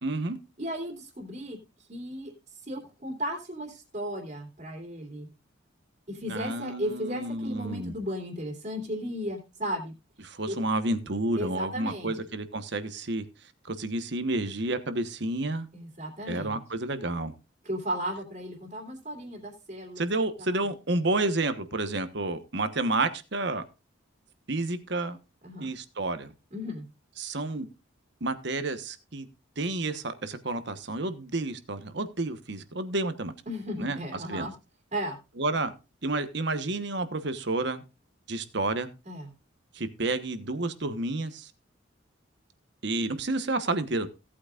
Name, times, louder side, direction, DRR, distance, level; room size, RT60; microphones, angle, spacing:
voice 1, 0.0-0.4 6.3-7.9 10.2-13.2 13.6-15.7 16.3-17.3 20.0-23.6 24.5-25.2 25.6-26.3 27.2-27.7 28.2-29.3 29.6-33.3 33.8-34.0 34.3-34.5 35.4-35.7 36.0-37.8 38.3-38.9 39.7-41.5 42.8-44.1, right 2 dB, 55° right, 1.2 m, -30 dB
voice 2, 0.6-1.6 1.9-5.3 6.1-9.9 10.5-10.6 11.4-12.1 15.7-16.6 17.6-20.0 25.4-25.7 26.5-26.8 33.5-34.5 34.9-35.2 39.1-39.3, equal, 40° right, 2.7 m, -35 dB
17.0 x 8.6 x 2.5 m
head